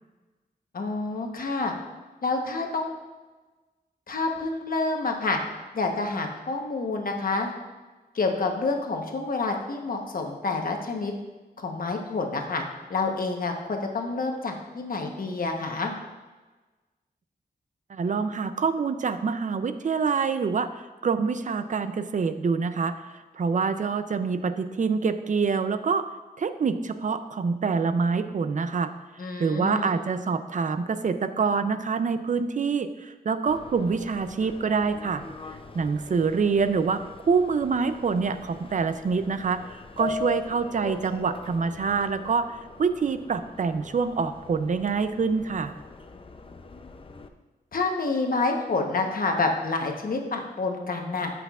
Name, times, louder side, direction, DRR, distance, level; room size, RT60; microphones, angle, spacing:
voice 1, 0.7-1.7 2.2-2.9 4.1-5.4 5.7-7.5 8.1-11.1 11.6-12.6 12.9-15.9 29.2-30.0 47.7-51.3, left 3 dB, 60° left, 3 dB, 1.0 m, -28 dB
voice 2, 17.9-20.7 21.0-23.0 23.3-26.1 26.4-28.9 29.4-35.2 35.7-37.0 37.3-45.7, right 5 dB, 50° right, 10 dB, 0.5 m, -26 dB
Subway metro underground, 33.5-47.3, left 4 dB, 30° left, 0.5 m, -42 dB
13.5 x 5.8 x 2.4 m, 1.3 s
wide cardioid pair, 125°, 17 cm